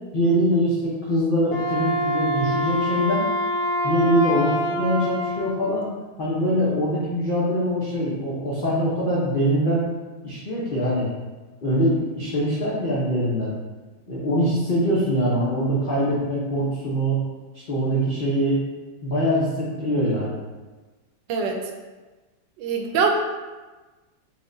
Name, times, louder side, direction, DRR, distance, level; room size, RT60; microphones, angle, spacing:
voice 1, 0.1-3.3 3.8-5.9 6.2-9.9 10.2-11.1 11.6-13.5 14.1-17.2 17.7-18.6 19.0-20.3, equal, 90° left, -8 dB, 0.4 m, -23 dB
Wind instrument woodwind instrument, 1.4-5.6, equal, 70° left, 0.8 m, -25 dB
voice 2, 22.6-23.1, right 6 dB, 75° right, 2 dB, 1.2 m, -23 dB
4.6 x 2.1 x 3.7 m, 1.2 s
omnidirectional pair, 2.0 m